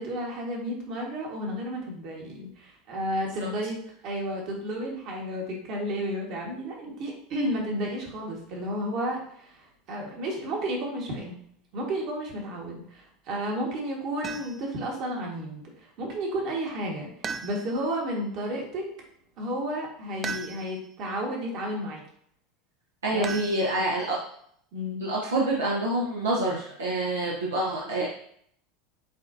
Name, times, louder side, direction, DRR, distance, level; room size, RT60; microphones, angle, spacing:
voice 1, 0.0-11.3 11.7-17.1 17.4-18.9 19.4-22.0 23.1-23.7 24.7-25.1, equal, 55° right, -1 dB, 1.5 m, -32 dB
sound 1, 14.2-14.8 17.2-18.0 20.2-20.9 23.2-24.1, right 5 dB, 30° right, 0.3 m, -37 dB
voice 2, 23.0-24.2 25.0-28.1, right 1 dB, 85° right, -4 dB, 0.8 m, -27 dB
7.7 x 2.6 x 2.7 m, 0.66 s
hypercardioid pair, 85°, 0 cm